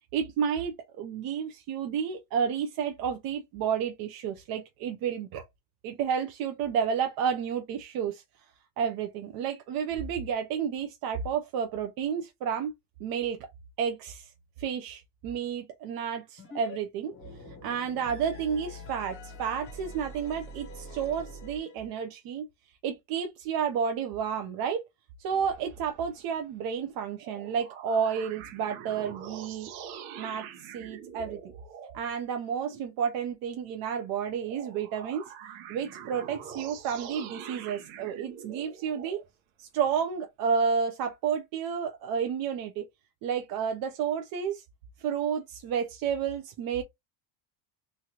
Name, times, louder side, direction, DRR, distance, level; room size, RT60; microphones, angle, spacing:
voice 1, 0.1-5.4 5.8-8.2 8.8-12.7 13.0-13.5 13.8-14.3 14.6-17.1 17.6-22.5 22.8-24.8 25.2-29.7 30.2-31.4 31.9-35.2 35.7-39.2 39.6-42.9 43.2-44.6 45.0-46.8, right 7 dB, 50° right, 0.5 m, -31 dB
sound 1, 16.4-16.8 17.0-22.0, left 1 dB, 30° left, 0.6 m, -45 dB
sound 2, 25.3-26.9 27.2-32.0 34.4-39.3, right 8 dB, 80° right, 0.9 m, -45 dB
3.1 x 2.4 x 2.8 m
cardioid pair, 170°, 48 cm